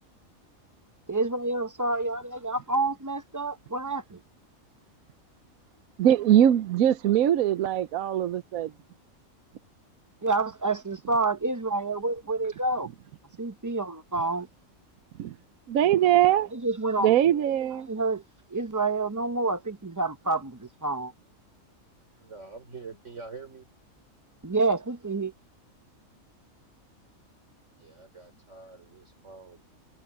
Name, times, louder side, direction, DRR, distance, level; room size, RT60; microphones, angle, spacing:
voice 1, 1.1-4.2 10.2-12.9 13.4-14.5 16.5-17.1 17.9-18.2 18.5-21.1 24.4-25.3, right 3 dB, 20° right, 0.6 m, -28 dB
voice 2, 6.0-8.7 15.2-15.4 15.7-16.5 17.0-17.9, right 11 dB, 80° right, 1.1 m, -22 dB
voice 3, 22.2-23.7 27.8-29.6, right 4 dB, 55° right, 4.0 m, -45 dB
omnidirectional pair, 1.5 m